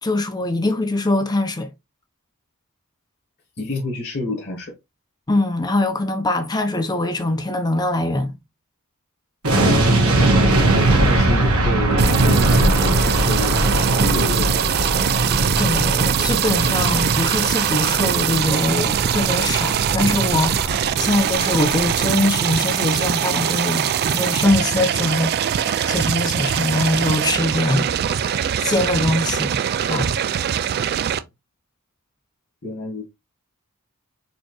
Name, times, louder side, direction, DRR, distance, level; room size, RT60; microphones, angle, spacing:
voice 1, 0.0-1.7 5.3-8.4 15.6-27.9 28.6-30.2, left 2 dB, 20° left, 0.6 m, -22 dB
voice 2, 3.6-4.7 9.5-14.6 32.6-33.0, left 2 dB, 50° left, 1.2 m, -29 dB
sound 1, 9.4-22.6 22.9-23.0, right 2 dB, 70° right, 1.3 m, -20 dB
sound 2, 12.0-31.2, right 9 dB, 45° right, 0.3 m, -22 dB
4.3 x 2.9 x 3.0 m
head